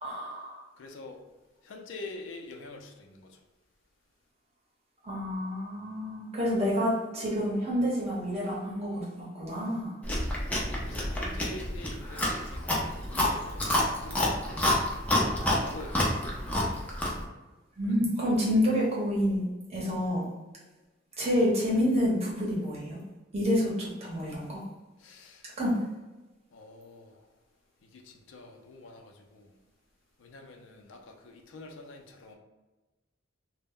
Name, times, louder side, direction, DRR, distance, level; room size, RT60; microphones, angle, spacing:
voice 1, 0.0-0.6 5.0-9.9 17.8-20.2 21.2-23.0 23.3-24.6 25.6-25.7, equal, 35° right, -5 dB, 0.8 m, -28 dB
voice 2, 0.8-1.2 1.6-3.4 10.1-10.2 10.8-14.2 15.6-16.4 17.9-18.3 25.0-25.5 26.5-27.3 27.8-29.5 30.2-32.3, left 2 dB, 70° left, 3 dB, 0.4 m, -46 dB
Chewing mastication, 10.0-17.2, left 1 dB, 10° left, 0.4 m, -28 dB
2.1 x 2.0 x 3.5 m, 1.2 s
head